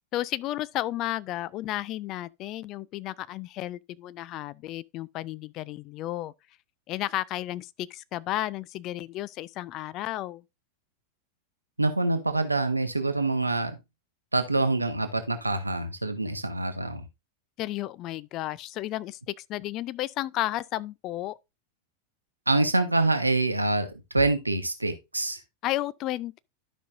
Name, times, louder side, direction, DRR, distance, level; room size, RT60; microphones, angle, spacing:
voice 1, 0.1-6.3 6.9-10.4 17.6-21.4 25.6-26.3, left 15 dB, 35° left, 0.3 m, -33 dB
voice 2, 11.8-13.8 14.3-17.0 22.5-25.4, right 2 dB, 85° right, 1.0 m, -26 dB
12.0 x 5.3 x 2.5 m
figure-of-eight pair, 90°, 0 cm